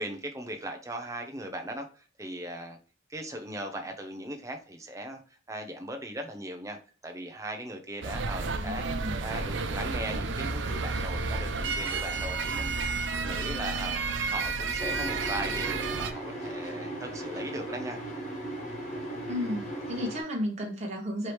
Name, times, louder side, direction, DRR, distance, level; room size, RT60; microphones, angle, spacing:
voice 1, 0.0-2.8 3.1-12.8 13.2-18.0, right 1 dB, 15° right, 4 dB, 0.7 m, -38 dB
sound 1, 8.0-16.1, right 4 dB, 70° right, 0.5 m, -31 dB
voice 2, 8.6-9.2 19.3-21.3, left 1 dB, 35° right, -1 dB, 1.2 m, -33 dB
sound 2, 14.8-20.2, right 1 dB, 35° left, 1.4 m, -37 dB
4.7 x 3.1 x 3.1 m, 0.39 s
head